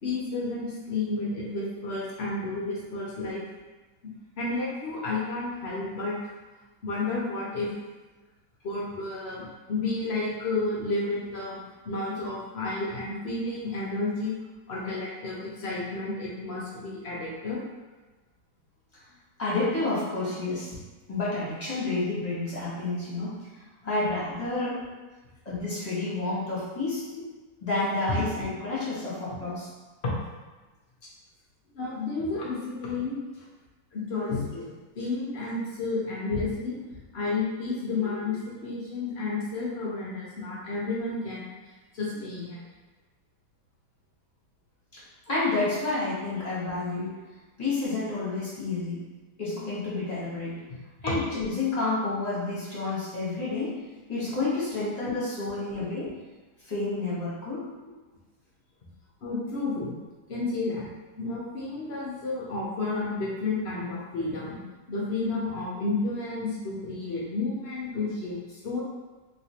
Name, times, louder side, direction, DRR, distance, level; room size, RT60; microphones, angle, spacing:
voice 1, 0.0-3.4 4.4-6.2 6.8-7.7 8.6-11.6 11.8-14.4 14.7-17.6 28.1-28.2 30.0-30.1 31.0-31.1 31.7-33.2 33.9-36.8 37.1-41.5 41.9-42.6 51.0-51.1 59.2-59.9 60.3-60.9 61.1-64.6 64.9-68.8, left 3 dB, 60° left, -6 dB, 0.6 m, -31 dB
voice 2, 19.4-20.8 21.1-23.4 23.8-24.8 25.4-27.0 27.6-29.7 44.9-45.0 45.3-47.1 47.6-49.0 49.4-50.6 51.0-53.8 54.1-56.1 56.6-57.6, left 3 dB, 30° left, -9 dB, 1.0 m, -29 dB
3.3 x 3.0 x 2.8 m, 1.2 s
omnidirectional pair, 1.9 m